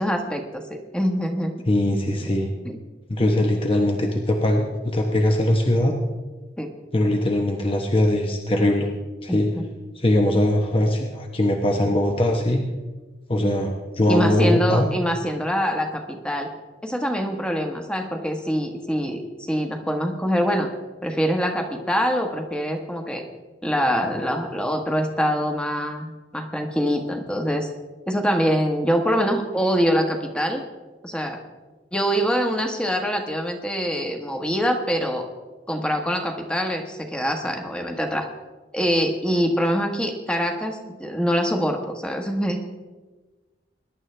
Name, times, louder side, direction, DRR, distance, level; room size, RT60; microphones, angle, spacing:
voice 1, 0.0-1.5 2.6-2.8 6.6-6.7 9.3-9.4 14.1-16.5 16.8-20.7 21.0-23.2 23.6-27.7 28.1-30.6 31.0-31.4 31.9-35.3 35.7-38.3 38.7-42.6, equal, 5° left, 3 dB, 1.3 m, -24 dB
voice 2, 1.7-2.5 3.1-5.9 6.9-8.9 9.2-9.5 9.9-12.6 13.3-14.9, left 1 dB, 30° left, 2 dB, 1.0 m, -21 dB
21.5 x 11.0 x 3.3 m, 1.3 s
head